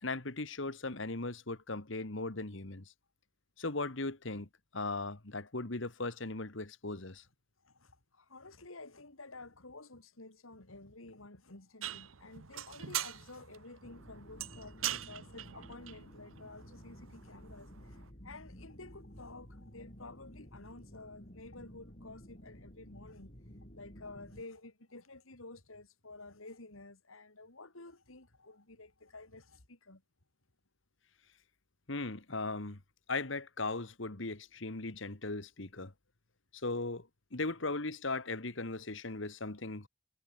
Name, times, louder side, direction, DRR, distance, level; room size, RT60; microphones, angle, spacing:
voice 1, 0.0-2.9 3.6-7.2 31.9-32.8 33.1-35.9 36.6-39.9, left 3 dB, 65° left, 1.8 m, -38 dB
voice 2, 7.6-18.0 18.2-23.3 23.8-30.0, left 2 dB, 80° left, 3.5 m, -52 dB
sound 1, 11.8-18.1, right 12 dB, 75° right, 1.0 m, -43 dB
sound 2, 13.8-24.4, equal, 40° left, 5.4 m, -53 dB
head